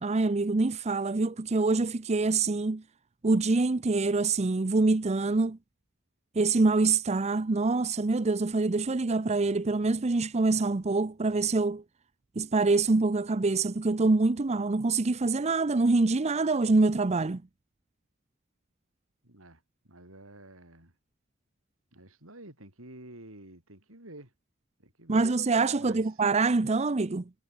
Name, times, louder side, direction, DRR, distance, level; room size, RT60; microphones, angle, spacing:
voice 1, 0.0-2.8 3.2-5.6 6.4-11.8 12.4-17.4 25.1-27.2, right 3 dB, 35° right, 0.6 m, -25 dB
voice 2, 19.2-20.9 21.9-24.3 24.8-25.3 25.8-26.1, right 1 dB, 90° right, 7.6 m, -50 dB
head